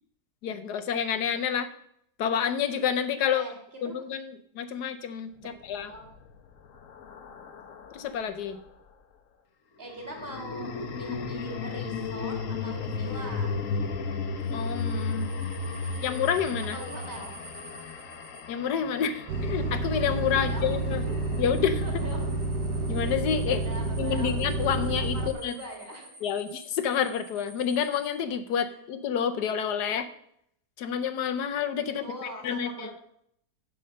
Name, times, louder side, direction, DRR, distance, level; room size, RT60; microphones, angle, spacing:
voice 1, 0.4-1.7 2.2-3.5 3.8-5.9 7.9-8.6 14.5-15.3 16.0-16.8 18.5-21.0 21.4-21.8 22.9-23.6 24.0-25.2 25.4-25.5 26.2-30.1 30.8-32.9, left 8 dB, 80° left, 8 dB, 1.3 m, -29 dB
sound 1, 5.8-8.3 9.9-22.2, left 4 dB, 55° left, 1.2 m, -35 dB
voice 2, 9.8-13.5 16.7-17.3 20.3-21.2 21.8-22.3 23.5-24.4 25.1-26.3 32.0-32.9, equal, 35° right, 1 dB, 2.7 m, -42 dB
sound 2, 14.4-18.4 19.9-28.1, right 2 dB, 60° right, 2.9 m, -50 dB
sound 3, 19.3-25.3, right 2 dB, 85° right, 1.5 m, -29 dB
7.7 x 6.9 x 6.5 m, 0.72 s
omnidirectional pair, 1.8 m